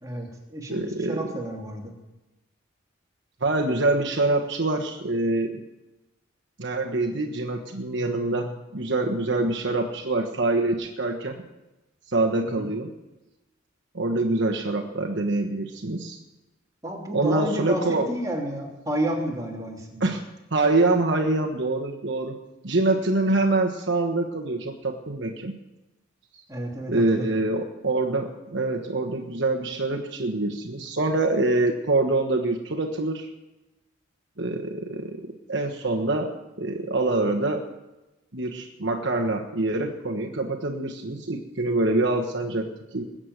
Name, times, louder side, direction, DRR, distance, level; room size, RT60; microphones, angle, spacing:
voice 1, 0.0-1.9 12.4-12.7 16.8-20.0 26.5-27.3, right 1 dB, 15° right, -1 dB, 3.0 m, -31 dB
voice 2, 0.7-1.3 3.4-5.6 6.6-11.4 12.1-12.9 13.9-16.2 17.1-18.1 20.0-20.2 20.5-22.4 22.6-25.5 26.9-33.3 34.4-36.3 36.6-37.6 38.3-43.0, right 2 dB, 60° right, 3 dB, 1.3 m, -25 dB
21.0 x 7.7 x 8.1 m, 1.0 s
head